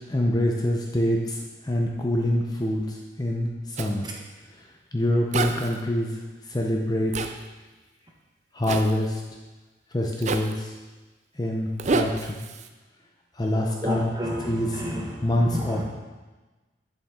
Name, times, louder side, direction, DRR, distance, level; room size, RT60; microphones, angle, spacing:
voice 1, 0.1-3.5 3.8-4.1 4.9-6.1 6.5-7.2 8.5-9.2 9.9-10.7 11.4-12.4 13.4-14.1 14.4-14.7 15.2-15.9, left 1 dB, 20° left, 0 dB, 0.7 m, -25 dB
Zipper (clothing), 3.8-3.9 5.3-5.8 7.1-7.3 8.6-8.9 10.2-10.6 11.8-12.7, right 3 dB, 40° right, 0.4 m, -28 dB
voice 2, 13.8-15.9, equal, 25° right, -1 dB, 1.2 m, -31 dB
8.3 x 7.2 x 3.7 m, 1.2 s
head